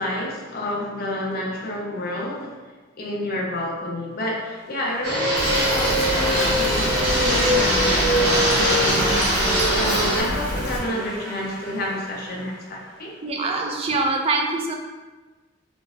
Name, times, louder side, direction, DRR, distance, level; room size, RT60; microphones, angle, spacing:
voice 1, 0.0-2.6 3.0-13.1, left 1 dB, 50° left, -2 dB, 0.5 m, -30 dB
sound 1, 4.4-13.1, equal, 70° right, 0.7 m, -34 dB
Fixed-wing aircraft airplane, 5.0-10.2, equal, 85° right, 1.1 m, -21 dB
Fill (with liquid), 5.3-10.8, equal, 80° left, 0.8 m, -29 dB
voice 2, 13.2-14.7, right 3 dB, 30° right, 2 dB, 0.3 m, -24 dB
3.8 x 2.0 x 2.4 m, 1.3 s
head